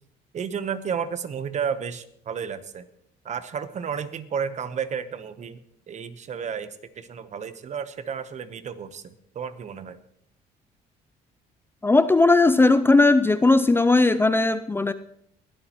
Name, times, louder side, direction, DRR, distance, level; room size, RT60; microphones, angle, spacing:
voice 1, 0.3-2.8 3.2-5.6 5.9-10.0, right 7 dB, 45° right, 12 dB, 1.0 m, -32 dB
voice 2, 11.8-14.9, left 3 dB, 15° left, 12 dB, 0.4 m, -18 dB
21.0 x 12.5 x 3.0 m, 0.72 s
cardioid pair, 110°, 17 cm